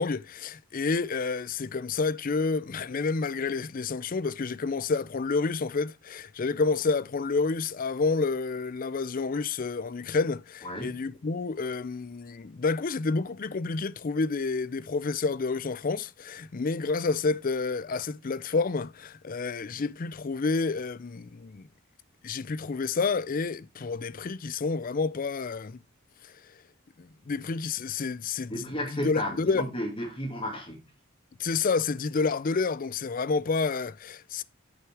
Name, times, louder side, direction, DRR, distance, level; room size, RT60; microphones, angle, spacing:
voice 1, 0.0-21.7 22.2-25.8 27.0-29.7 31.4-34.4, left 4 dB, 40° left, 0.5 m, -29 dB
voice 2, 10.6-11.0 28.5-30.8, equal, 25° left, 2.5 m, -33 dB
9.1 x 6.5 x 4.6 m
head